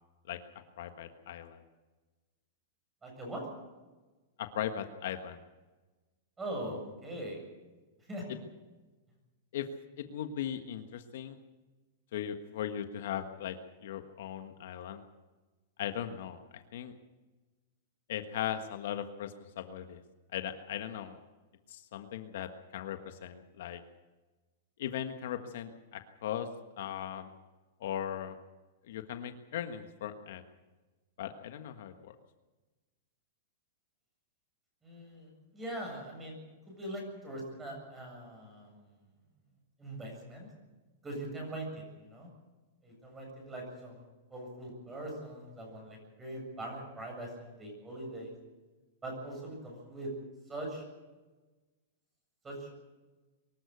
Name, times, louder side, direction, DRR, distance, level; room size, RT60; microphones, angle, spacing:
voice 1, 0.8-1.6 4.4-5.4 8.3-8.4 9.5-9.7 10.0-11.4 12.1-15.0 15.8-16.9 18.1-20.0 20.3-21.2 21.7-23.8 24.8-26.5 26.8-27.3 27.8-28.4 28.8-30.4 31.2-32.1, left 10 dB, 65° left, 7 dB, 1.5 m, -38 dB
voice 2, 3.0-3.4 6.4-7.4 8.1-8.3 34.8-36.4 36.7-38.9 39.8-40.5 41.0-42.3 42.8-44.0 44.3-48.3 49.0-50.1 50.5-50.8 52.4-52.7, right 1 dB, 10° right, 0 dB, 7.5 m, -41 dB
23.5 x 13.5 x 8.2 m, 1.2 s
supercardioid pair, 160°, 0 cm